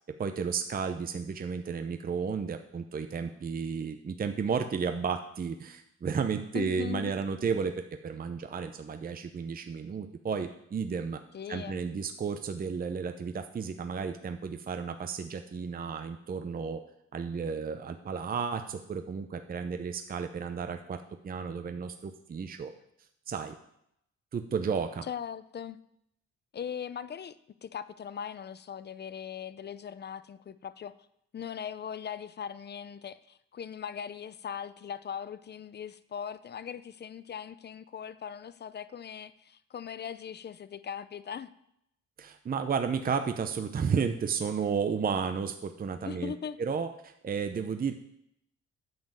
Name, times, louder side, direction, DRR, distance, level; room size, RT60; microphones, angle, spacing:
voice 1, 0.2-11.2 11.5-16.8 17.1-22.7 23.3-23.6 24.3-25.1 42.2-46.3 46.6-47.9, right 6 dB, 30° right, 7 dB, 0.6 m, -33 dB
voice 2, 6.5-7.1 11.3-11.8 25.1-25.8 26.5-30.9 31.3-41.5 46.0-46.6, left 8 dB, 35° left, 15 dB, 0.5 m, -40 dB
9.2 x 5.2 x 7.5 m, 0.77 s
cardioid pair, 90°, 30 cm